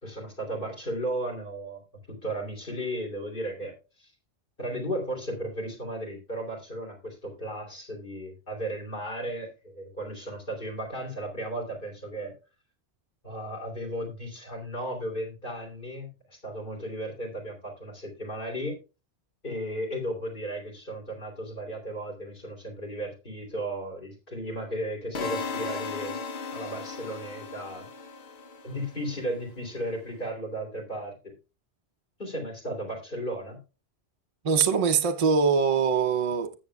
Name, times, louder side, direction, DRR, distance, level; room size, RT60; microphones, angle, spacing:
voice 1, 0.0-1.8 2.1-4.1 4.6-12.3 13.2-18.8 19.4-26.2 26.5-27.9 28.6-31.3 32.2-33.6, right 1 dB, 50° left, 3.4 m, -35 dB
sound 1, 25.1-29.2, left 4 dB, 65° left, 1.1 m, -36 dB
voice 2, 34.4-36.5, right 6 dB, 40° right, 0.6 m, -23 dB
19.0 x 7.0 x 2.3 m
omnidirectional pair, 1.1 m